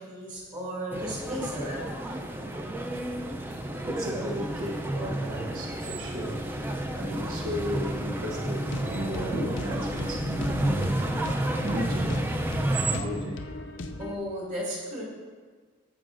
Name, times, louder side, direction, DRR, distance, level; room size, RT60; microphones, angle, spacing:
voice 1, 0.0-2.5 7.0-7.3 14.0-15.0, equal, 40° right, -5 dB, 2.4 m, -36 dB
sound 1, 0.9-13.0, right 1 dB, 10° right, 0.4 m, -31 dB
voice 2, 3.8-6.5 6.9-12.1 12.7-13.4, equal, 85° right, -1 dB, 0.9 m, -35 dB
sound 2, 8.6-14.2, left 2 dB, 60° left, 0.5 m, -38 dB
11.0 x 7.6 x 2.5 m, 1.5 s
head